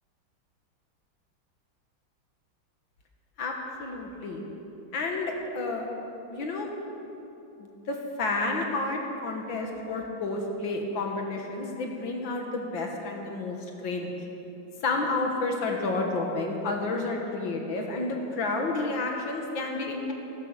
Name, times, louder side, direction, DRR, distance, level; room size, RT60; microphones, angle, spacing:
voice 1, 3.4-4.4 4.9-5.9 6.3-6.7 7.6-14.2 14.8-20.1, left 3 dB, 75° left, 1 dB, 2.2 m, -30 dB
15.5 x 14.0 x 6.2 m, 2.9 s
omnidirectional pair, 2.2 m